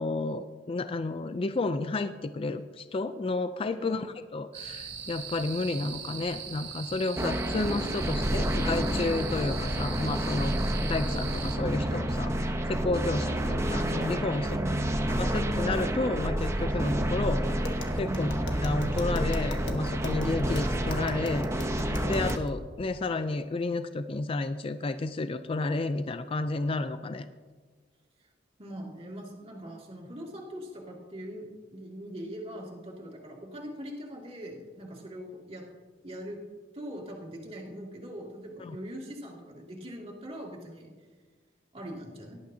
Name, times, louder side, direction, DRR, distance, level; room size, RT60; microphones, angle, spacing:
voice 1, 0.0-4.1 4.3-10.5 10.8-14.5 15.2-17.7 17.9-18.3 18.6-21.5 22.0-27.3 38.6-38.8, left 3 dB, 30° left, 10 dB, 0.4 m, -31 dB
sound 1, 4.5-11.6, right 7 dB, 80° right, 1.4 m, -40 dB
sound 2, 7.2-22.4, right 1 dB, 15° right, 0.8 m, -29 dB
voice 2, 14.3-14.9 18.0-18.3 28.6-31.5 31.7-35.6 36.0-36.4 36.7-40.9 41.7-42.4, equal, 35° right, -2 dB, 2.3 m, -41 dB
Tap, 17.5-22.5, left 1 dB, 75° left, 1.4 m, -40 dB
18.0 x 11.5 x 2.8 m, 1.4 s
head